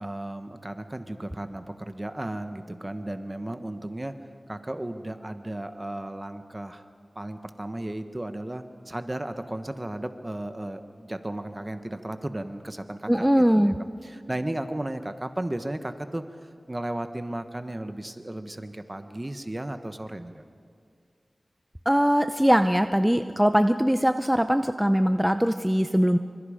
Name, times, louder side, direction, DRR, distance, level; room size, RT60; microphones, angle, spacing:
voice 1, 0.0-4.1 4.5-6.8 7.1-20.4, right 1 dB, 25° right, 8 dB, 1.1 m, -35 dB
voice 2, 13.1-13.8 21.9-26.2, equal, 5° right, 8 dB, 0.6 m, -21 dB
27.0 x 25.0 x 5.1 m, 2.2 s
wide cardioid pair, 75°, 0 cm